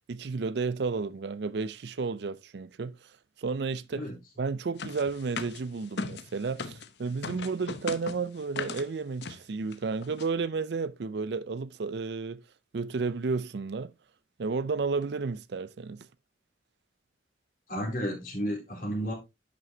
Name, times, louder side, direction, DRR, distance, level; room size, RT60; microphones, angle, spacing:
voice 1, 0.1-2.9 3.4-4.0 4.4-12.4 12.7-13.9 14.4-16.1, right 4 dB, 65° right, 0.5 m, -32 dB
sound 1, 4.8-6.9 7.2-8.9 9.2-9.4 9.7-9.8 10.0-10.3, left 4 dB, 70° left, 0.8 m, -37 dB
voice 2, 17.7-19.1, equal, 50° left, 3.6 m, -32 dB
10.5 x 6.2 x 2.7 m
head